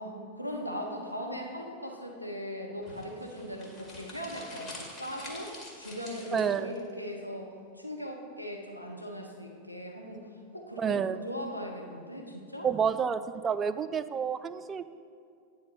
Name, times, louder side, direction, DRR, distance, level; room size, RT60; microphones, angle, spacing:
voice 1, 0.0-7.5 7.7-10.3 10.5-11.0 11.2-12.7, equal, 90° left, 0 dB, 0.8 m, -39 dB
sound 1, 2.8-6.8, left 2 dB, 25° left, 2.0 m, -46 dB
voice 2, 6.3-6.7 10.8-11.2 12.6-14.8, right 7 dB, 20° right, 12 dB, 0.3 m, -29 dB
9.4 x 4.1 x 6.6 m, 2.3 s
figure-of-eight pair, 90°, 0 cm